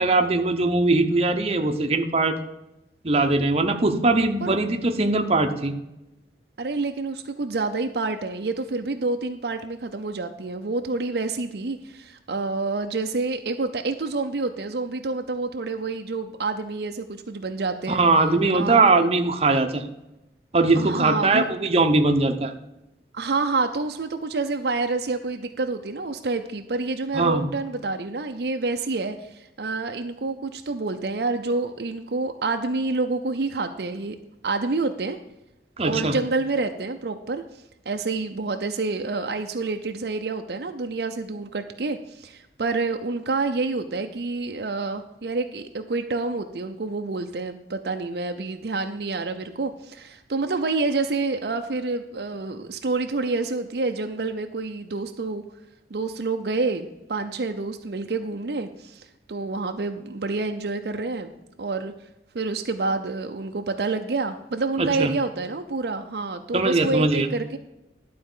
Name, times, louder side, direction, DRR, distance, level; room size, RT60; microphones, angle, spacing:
voice 1, 0.0-2.4 3.0-5.7 17.9-19.8 20.5-22.5 27.1-27.5 35.8-36.1 64.8-65.1 66.5-67.3, right 3 dB, 35° right, 5 dB, 0.8 m, -21 dB
voice 2, 6.6-18.0 18.5-18.9 20.7-21.5 23.1-34.2 34.4-35.2 35.8-37.4 37.9-55.4 55.9-61.3 61.6-61.9 62.3-67.6, right 3 dB, 65° right, 6 dB, 0.6 m, -28 dB
11.5 x 4.3 x 7.1 m, 0.93 s
head